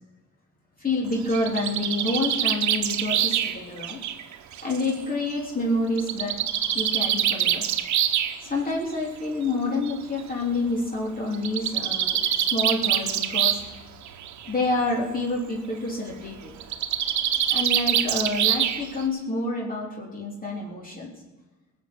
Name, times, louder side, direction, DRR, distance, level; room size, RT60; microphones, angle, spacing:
voice 1, 0.8-4.0 4.6-6.3 6.7-7.7 8.4-13.6 14.5-16.5 17.5-21.1, left 2 dB, 30° left, -3 dB, 3.6 m, -28 dB
Bird, 1.1-4.9 6.0-8.3 9.4-9.5 9.9-10.0 10.2-10.3 11.3-13.7 14.0-14.5 16.6-19.0, right 10 dB, 70° right, 1.1 m, -25 dB
18.5 x 7.2 x 8.7 m, 1.2 s
cardioid pair, 90°, 30 cm